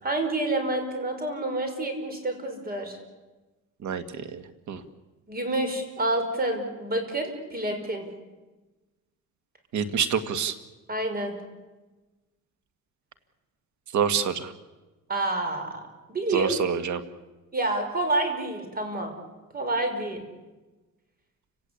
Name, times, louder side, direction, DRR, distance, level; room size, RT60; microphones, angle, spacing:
voice 1, 0.0-3.0 5.3-8.1 10.9-11.3 15.1-15.8 16.1-16.5 17.5-19.2 19.5-20.2, right 2 dB, 30° right, 6 dB, 5.7 m, -28 dB
voice 2, 3.8-4.4 4.7-4.8 9.7-10.5 13.9-14.5 16.3-17.0, right 7 dB, 70° right, 10 dB, 2.1 m, -26 dB
29.5 x 18.0 x 8.6 m, 1.2 s
cardioid pair, 115°, 30 cm